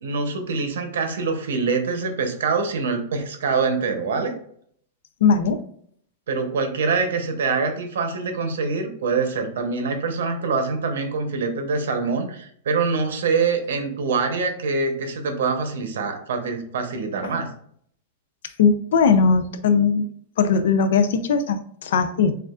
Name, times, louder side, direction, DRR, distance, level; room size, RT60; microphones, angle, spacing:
voice 1, 0.0-4.3 6.3-17.5, right 4 dB, 85° right, 6 dB, 0.9 m, -24 dB
voice 2, 5.2-5.6 17.2-17.3 18.6-20.1 20.4-22.4, left 5 dB, 70° left, 10 dB, 0.5 m, -19 dB
6.6 x 2.5 x 2.4 m, 0.63 s
supercardioid pair, 165°, 0 cm